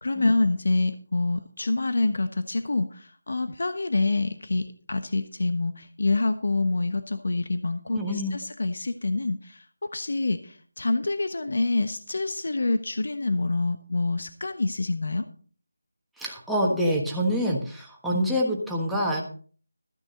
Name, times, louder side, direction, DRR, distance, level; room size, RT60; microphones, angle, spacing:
voice 1, 0.0-9.6 9.9-15.3, left 2 dB, 60° left, 9 dB, 1.1 m, -26 dB
voice 2, 7.9-8.3 16.2-19.2, equal, ahead, -4 dB, 1.4 m, -26 dB
14.0 x 9.7 x 4.0 m, 0.43 s
figure-of-eight pair, 175°, 0 cm